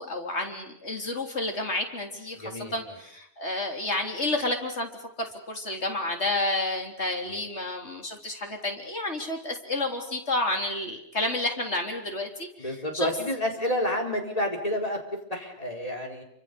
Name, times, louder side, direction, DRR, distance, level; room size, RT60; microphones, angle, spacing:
voice 1, 0.0-2.4 2.7-4.9 5.2-13.1, left 2 dB, 65° left, 2 dB, 4.0 m, -30 dB
voice 2, 2.3-3.0 7.3-7.4 12.6-15.0 15.3-16.2, left 1 dB, 30° left, 1 dB, 4.4 m, -29 dB
28.0 x 25.5 x 6.9 m, 0.72 s
omnidirectional pair, 1.2 m